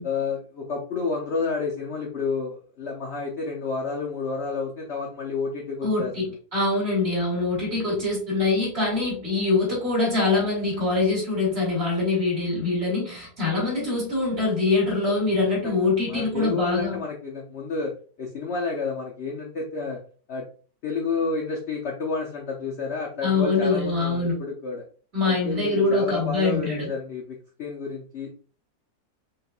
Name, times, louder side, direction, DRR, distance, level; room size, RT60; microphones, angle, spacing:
voice 1, 0.0-6.1 15.6-17.9 18.2-20.0 20.3-20.4 20.8-24.8 25.3-28.3, left 4 dB, 65° left, -1 dB, 0.6 m, -30 dB
voice 2, 5.8-17.0 23.2-24.4 25.1-26.9, left 3 dB, 35° right, -4 dB, 2.1 m, -24 dB
4.4 x 3.3 x 2.3 m, 0.41 s
omnidirectional pair, 2.0 m